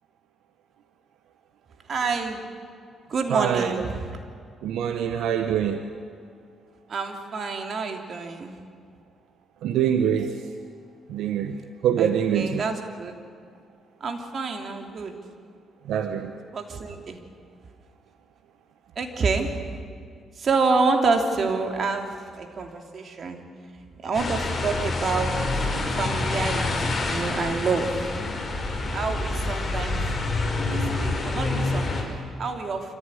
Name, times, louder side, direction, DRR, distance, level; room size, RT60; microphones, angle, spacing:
voice 1, 1.9-2.5 3.1-4.1 6.9-8.6 12.0-13.1 14.0-15.1 15.9-16.0 16.5-17.2 19.0-19.7 20.4-23.4 24.0-25.4 26.0-28.1 28.9-30.0 30.5-32.9, right 4 dB, 50° right, 4 dB, 3.0 m, -28 dB
voice 2, 3.3-3.7 4.6-5.8 9.6-10.3 11.1-11.6 11.8-12.6 15.9-16.3, right 9 dB, 85° right, 7 dB, 1.1 m, -24 dB
sound 1, 24.1-32.0, left 2 dB, 30° left, 5.1 m, -27 dB
26.0 x 15.0 x 9.9 m, 2.2 s
cardioid pair, 90°, 0 cm